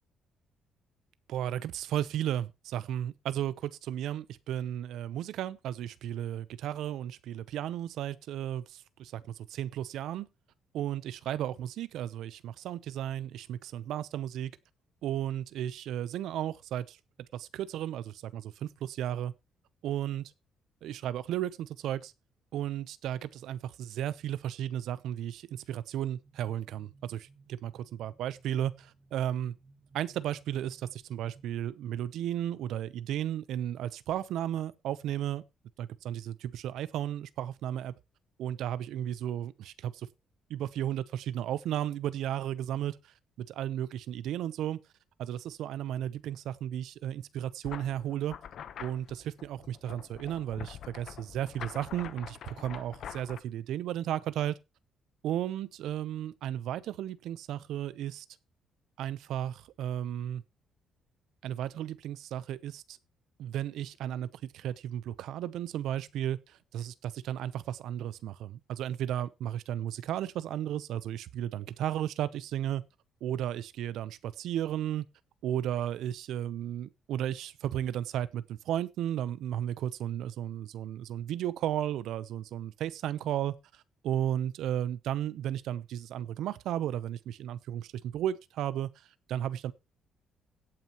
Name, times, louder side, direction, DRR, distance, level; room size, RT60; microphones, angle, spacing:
voice 1, 1.3-9.2 9.5-10.3 10.7-14.5 15.0-17.0 17.3-19.3 19.8-20.3 20.8-22.1 22.5-29.5 29.9-35.4 35.8-37.9 38.4-40.1 40.5-43.0 43.4-44.8 45.2-48.4 48.8-54.5 55.2-58.2 59.0-60.4 61.4-63.0 63.4-64.3 64.5-72.8 73.2-75.1 75.4-88.9 89.3-89.7, right 11 dB, 80° right, 0.7 m, -34 dB
sound 1, 26.2-31.5, right 3 dB, 25° right, 1.8 m, -59 dB
sound 2, 47.6-53.4, left 9 dB, 60° left, 0.9 m, -45 dB
17.0 x 8.8 x 3.0 m
cardioid pair, 135°, 0 cm